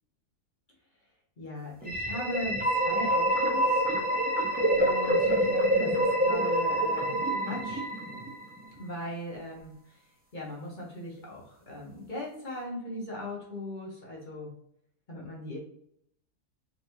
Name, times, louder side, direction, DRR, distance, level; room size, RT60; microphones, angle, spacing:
voice 1, 1.4-3.9 4.7-7.8 8.8-9.7 10.3-14.5 15.1-15.6, left 1 dB, 35° left, -3 dB, 1.2 m, -39 dB
sound 1, 1.8-8.6, right 1 dB, 10° right, 0.4 m, -26 dB
4.3 x 3.1 x 2.7 m, 0.71 s
omnidirectional pair, 1.7 m